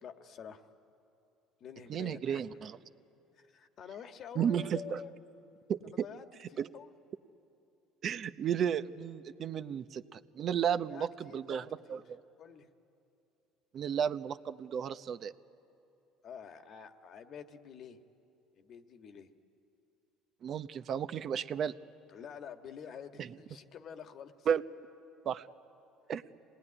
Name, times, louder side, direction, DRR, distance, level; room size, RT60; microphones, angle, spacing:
voice 1, 0.0-0.7 1.6-2.4 3.4-5.1 5.9-6.3 6.5-6.9 10.9-12.0 12.4-12.7 16.2-18.0 18.6-19.3 22.1-24.5, left 7 dB, 55° left, 7 dB, 1.5 m, -48 dB
voice 2, 1.9-2.8 4.4-5.0 5.7-5.8 6.6-6.7 8.0-12.2 13.7-15.3 20.4-21.7 23.2-23.3 24.5-24.6 25.2-25.5 26.1-26.2, right 8 dB, 50° right, 12 dB, 0.8 m, -33 dB
26.0 x 19.0 x 9.9 m, 2.7 s
supercardioid pair, 85°, 0 cm